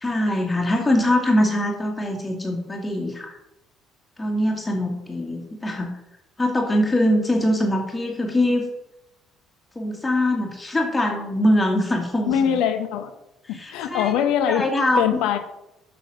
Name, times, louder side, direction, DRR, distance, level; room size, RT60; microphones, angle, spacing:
voice 1, 0.0-3.4 4.2-6.0 6.4-8.6 9.8-12.6 13.5-14.1 14.5-15.1, left 1 dB, 15° left, 1 dB, 1.8 m, -23 dB
voice 2, 12.3-13.1 13.5-14.7 15.0-15.4, left 9 dB, 60° left, 9 dB, 0.9 m, -22 dB
6.9 x 6.0 x 6.4 m, 0.89 s
figure-of-eight pair, 50°, 0 cm